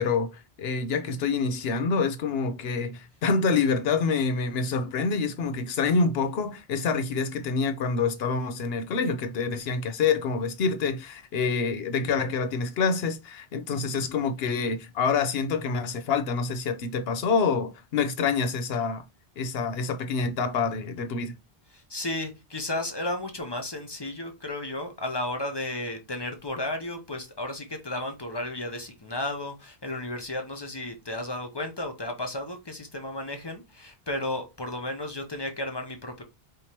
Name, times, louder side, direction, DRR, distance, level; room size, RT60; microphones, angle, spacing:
voice 1, 0.0-19.0 19.4-21.3, left 5 dB, 75° left, 0.9 m, -27 dB
voice 2, 21.7-36.2, left 1 dB, 25° left, 0.7 m, -33 dB
5.0 x 2.9 x 2.9 m
omnidirectional pair, 1.1 m